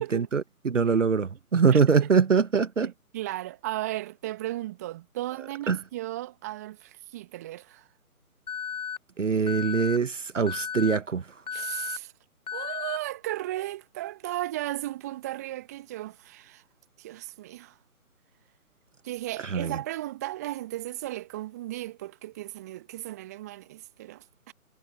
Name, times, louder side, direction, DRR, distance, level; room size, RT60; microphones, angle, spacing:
voice 1, 0.0-2.9 5.7-5.8 9.2-11.2 19.4-19.8, right 5 dB, 55° right, 1.1 m, -23 dB
voice 2, 1.7-2.1 2.8-7.9 11.5-12.1 12.5-16.6 17.0-17.8 19.0-24.5, right 15 dB, 10° right, 1.2 m, -35 dB
Alarm, 8.5-9.0 9.5-10.0 10.5-11.0 11.5-12.0 12.5-13.0, left 8 dB, 25° left, 1.4 m, -34 dB
figure-of-eight pair, 145°, 45 cm